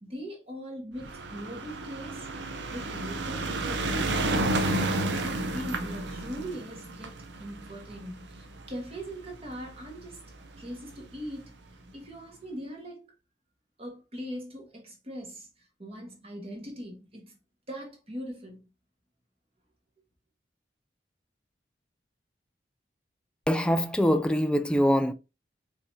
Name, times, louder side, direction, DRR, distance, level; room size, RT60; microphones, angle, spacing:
voice 1, 0.0-2.3 2.7-10.2 10.6-13.2 13.8-17.4 17.7-18.6, equal, 35° right, 1.5 m, -41 dB
sound 1, 1.0-9.5 10.3-10.4 10.6-10.7 10.9-11.0, right 2 dB, 85° right, 0.8 m, -31 dB
voice 2, 23.5-25.1, equal, 5° left, 0.3 m, -23 dB
5.4 x 3.4 x 2.7 m
head